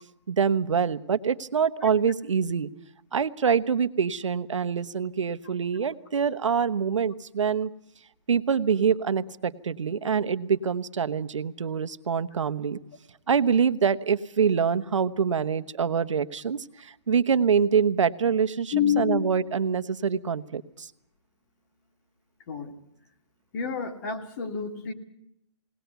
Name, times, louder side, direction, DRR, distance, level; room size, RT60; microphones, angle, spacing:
voice 1, 0.3-2.7 3.1-7.7 8.3-12.8 13.3-20.9, right 6 dB, 90° right, 11 dB, 1.2 m, -25 dB
voice 2, 18.7-19.2 22.5-22.7 23.5-24.9, left 8 dB, 40° left, 3 dB, 2.6 m, -28 dB
20.5 x 19.0 x 8.1 m, 0.77 s
hypercardioid pair, 160°, 15 cm